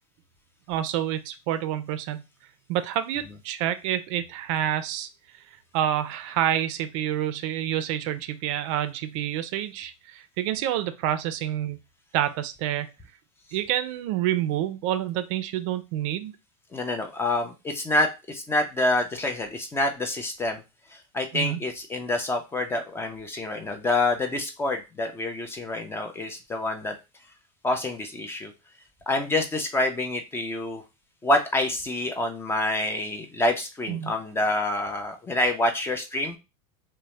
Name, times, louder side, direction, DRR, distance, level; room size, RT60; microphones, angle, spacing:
voice 1, 0.7-2.2 2.7-5.1 5.7-11.8 12.1-12.9 13.5-16.3 21.3-21.6 33.9-34.1, right 11 dB, 60° right, 11 dB, 0.4 m, -28 dB
voice 2, 16.7-20.6 20.9-27.0 27.6-28.5 29.1-30.8 31.2-36.4, left 2 dB, 15° left, 5 dB, 0.4 m, -27 dB
2.7 x 2.1 x 3.1 m, 0.26 s
supercardioid pair, 130°, 18 cm